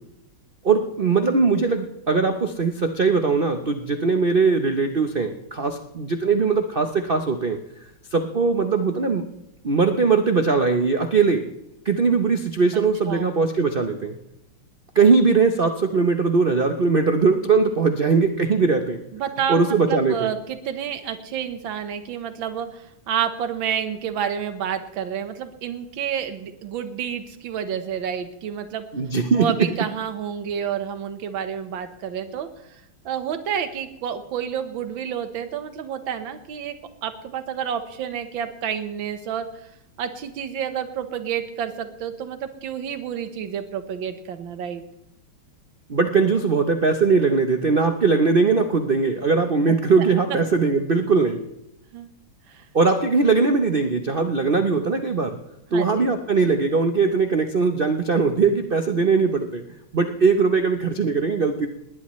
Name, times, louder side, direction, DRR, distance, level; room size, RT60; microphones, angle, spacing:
voice 1, 0.6-7.6 8.1-9.2 9.6-11.4 11.8-14.2 14.9-19.0 19.5-20.3 28.9-29.5 45.9-51.4 52.7-55.4 55.7-59.6 59.9-61.7, right 4 dB, 85° right, 6 dB, 0.4 m, -20 dB
voice 2, 12.7-13.3 19.1-28.9 29.4-36.7 37.0-39.7 40.0-44.8 49.7-49.8 50.3-50.4 51.9-52.1 52.5-52.7 55.7-56.1, right 8 dB, 65° right, 8 dB, 1.9 m, -29 dB
20.0 x 19.0 x 3.2 m, 0.85 s
omnidirectional pair, 2.4 m